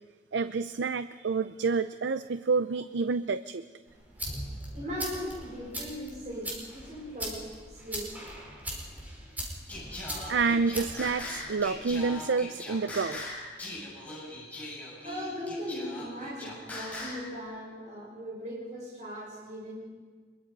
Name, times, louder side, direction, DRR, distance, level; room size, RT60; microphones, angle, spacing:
voice 1, 0.3-3.6 10.3-13.3, right 4 dB, 90° right, 12 dB, 0.5 m, -28 dB
sound 1, 3.9-11.9, right 1 dB, 10° right, 4.7 m, -40 dB
voice 2, 4.7-8.1 15.0-19.7, equal, 45° right, -5 dB, 6.2 m, -39 dB
Singing, 9.7-17.3, left 2 dB, 10° left, 6.5 m, -40 dB
24.5 x 22.5 x 5.4 m, 1.5 s
head